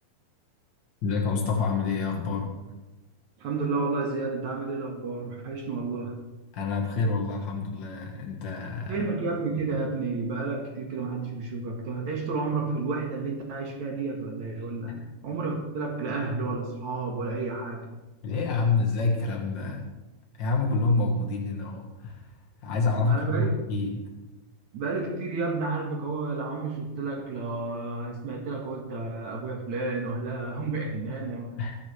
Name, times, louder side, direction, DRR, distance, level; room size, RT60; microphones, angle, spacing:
voice 1, 1.0-2.5 6.5-9.1 9.6-9.7 18.2-19.9 20.4-24.0 31.6-31.8, left 3 dB, 65° left, 0 dB, 1.1 m, -27 dB
voice 2, 3.4-6.2 8.9-17.8 23.0-23.6 24.7-31.5, right 3 dB, 55° right, 0 dB, 2.7 m, -31 dB
21.5 x 9.9 x 3.4 m, 1.1 s
omnidirectional pair, 4.5 m